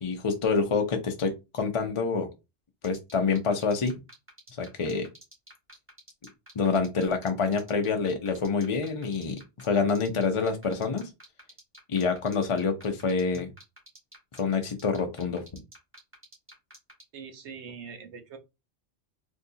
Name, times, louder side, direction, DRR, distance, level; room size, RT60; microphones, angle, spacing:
voice 1, 0.0-2.3 2.8-4.0 4.6-5.1 6.6-11.1 11.9-13.5 14.3-15.4, left 4 dB, 40° left, 0.5 m, -27 dB
sound 1, 2.8-17.0, equal, 10° right, 1.3 m, -49 dB
voice 2, 17.1-18.4, right 6 dB, 85° right, 1.0 m, -42 dB
3.7 x 2.7 x 2.7 m
omnidirectional pair, 1.1 m